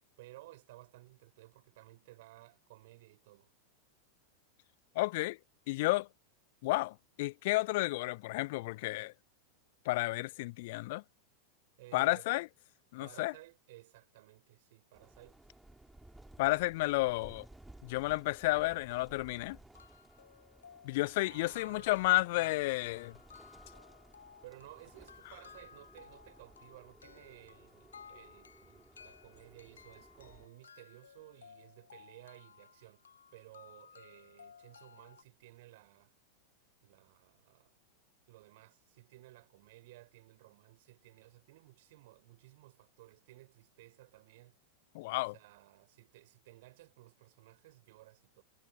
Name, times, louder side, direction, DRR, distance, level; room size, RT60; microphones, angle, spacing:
voice 1, 0.2-3.5 11.8-12.3 13.0-15.4 21.2-22.6 24.4-33.1 33.3-36.1 36.8-37.8 38.3-44.6 45.3-48.4, right 18 dB, 50° right, 7.8 m, -57 dB
voice 2, 4.9-5.4 5.7-6.1 6.6-9.1 9.8-11.0 11.9-12.5 12.9-13.3 16.4-17.5 17.8-19.6 20.8-23.2 44.9-45.3, left 21 dB, 50° left, 0.7 m, -31 dB
sound 1, 14.9-30.5, right 1 dB, 5° right, 4.0 m, -59 dB
sound 2, 19.2-19.3 19.7-35.2, left 7 dB, 70° left, 4.0 m, -57 dB
figure-of-eight pair, 90°, 0 cm